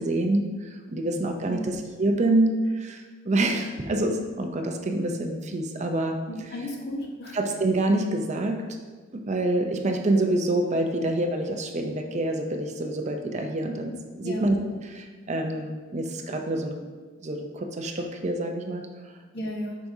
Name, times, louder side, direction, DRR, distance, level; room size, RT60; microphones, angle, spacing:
voice 1, 0.0-6.2 7.3-8.8 9.1-14.6 14.9-16.8 17.2-18.9, right 1 dB, 35° right, 4 dB, 0.5 m, -27 dB
voice 2, 1.4-1.8 6.3-7.4 14.2-14.5 19.3-19.8, equal, 50° left, -1 dB, 1.2 m, -34 dB
8.4 x 5.9 x 2.7 m, 1.4 s
head